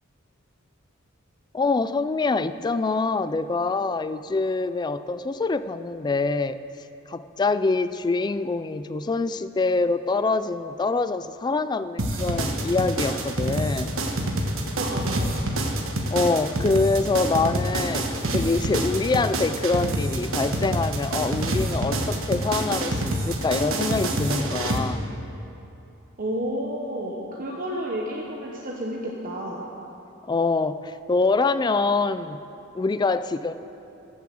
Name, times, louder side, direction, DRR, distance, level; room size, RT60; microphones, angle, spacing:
voice 1, 1.5-6.6 7.1-13.9 16.1-25.0 30.3-32.4 32.7-33.5, left 3 dB, 20° left, 13 dB, 0.3 m, -25 dB
sound 1, 12.0-24.8, right 1 dB, 70° right, 1.2 m, -26 dB
voice 2, 14.8-15.3 26.2-29.7, right 1 dB, 40° right, -3 dB, 1.1 m, -31 dB
13.5 x 7.1 x 7.7 m, 2.8 s
head